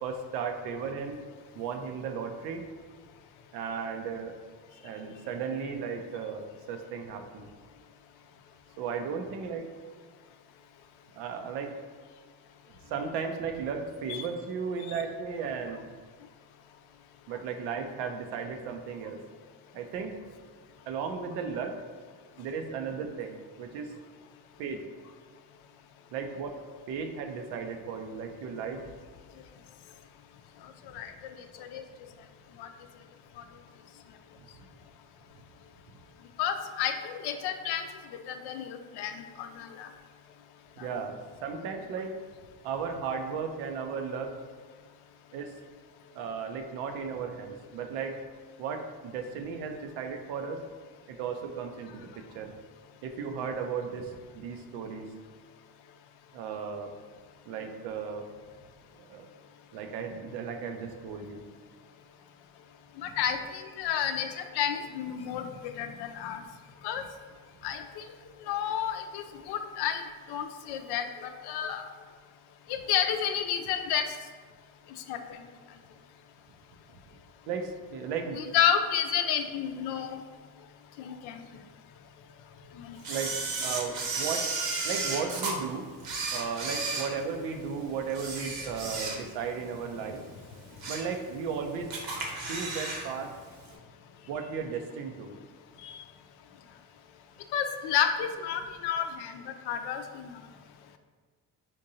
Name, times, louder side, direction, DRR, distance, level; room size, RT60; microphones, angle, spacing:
voice 1, 0.0-1.2 1.5-2.6 3.5-4.3 4.8-7.4 8.8-9.7 11.1-11.7 12.7-15.8 17.3-19.2 19.7-20.1 20.9-21.8 22.4-23.9 24.6-24.8 26.1-26.6 26.9-28.8 40.8-42.2 42.6-44.3 45.3-45.5 46.1-48.2 48.6-50.6 51.1-52.1 52.3-52.5 53.0-55.1 56.3-56.9 57.5-58.2 58.9-59.3 59.7-61.4 77.5-78.4 83.1-84.4 84.8-85.9 86.3-90.2 90.9-91.9 92.5-93.3 94.3-95.3, right 6 dB, 85° right, 4 dB, 0.6 m, -35 dB
voice 2, 36.4-37.8 38.3-39.9 40.8-40.9 63.0-65.5 65.8-66.4 66.8-67.0 67.6-68.0 68.5-70.0 70.3-71.9 72.7-74.0 75.1-75.2 78.4-80.2 81.0-81.3 82.8-83.0 95.8-96.0 97.5-99.3 99.7-100.3, left 9 dB, 70° left, 7 dB, 0.5 m, -30 dB
Camera, 83.0-85.5 86.0-87.7 88.1-89.5 89.9-90.0 90.5-91.1 91.5-91.6 91.9-93.1 93.3-93.4, right 3 dB, 65° right, 0.9 m, -33 dB
5.2 x 2.6 x 2.7 m, 1.5 s
supercardioid pair, 65°, 41 cm